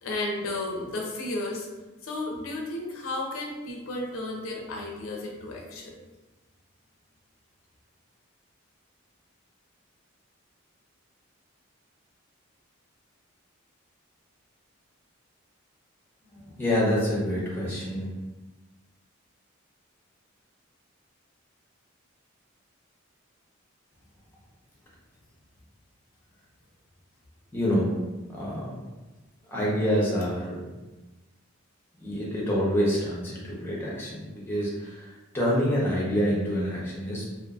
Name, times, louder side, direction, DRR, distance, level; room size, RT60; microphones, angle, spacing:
voice 1, 0.0-1.7 2.0-6.0, left 2 dB, 80° left, 0 dB, 0.5 m, -33 dB
voice 2, 16.3-18.1 27.5-28.0 28.3-28.8 29.5-30.6 32.0-37.2, equal, 10° left, -5 dB, 0.7 m, -27 dB
2.5 x 2.5 x 2.3 m, 1.1 s
head